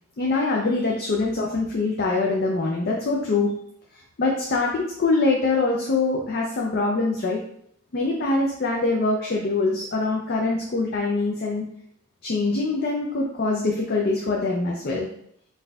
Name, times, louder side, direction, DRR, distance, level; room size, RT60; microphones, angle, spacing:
voice 1, 0.2-3.5 4.2-7.4 7.9-11.6 12.2-15.1, left 3 dB, 45° left, -2 dB, 0.4 m, -24 dB
3.9 x 2.6 x 2.3 m, 0.69 s
head